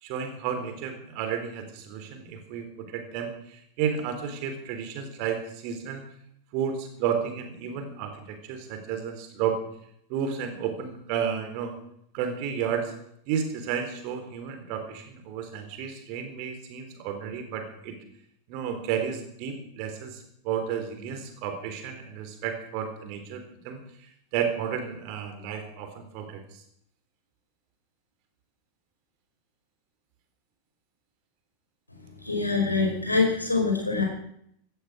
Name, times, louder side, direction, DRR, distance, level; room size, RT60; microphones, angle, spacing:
voice 1, 0.0-6.1 6.5-9.6 10.1-11.7 12.1-12.9 13.3-18.0 18.5-26.6, right 7 dB, 45° right, 6 dB, 3.9 m, -32 dB
voice 2, 32.2-34.0, left 4 dB, 85° left, 3 dB, 4.9 m, -24 dB
17.0 x 13.5 x 6.3 m, 0.71 s
figure-of-eight pair, 90°, 0 cm